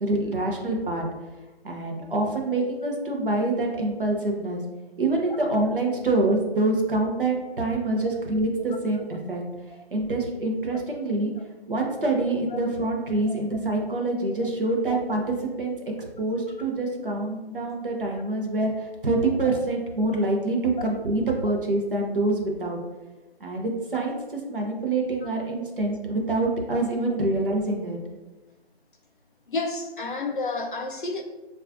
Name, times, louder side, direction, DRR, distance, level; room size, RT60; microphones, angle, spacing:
voice 1, 0.0-1.0 1.6-4.6 5.0-9.4 9.9-11.3 11.7-15.7 16.2-22.8 23.4-24.2 24.5-28.0, right 2 dB, 55° right, 0.7 m, -26 dB
voice 2, 29.5-31.2, left 3 dB, 50° left, 0.4 m, -30 dB
4.0 x 2.3 x 2.5 m
figure-of-eight pair, 160°, 33 cm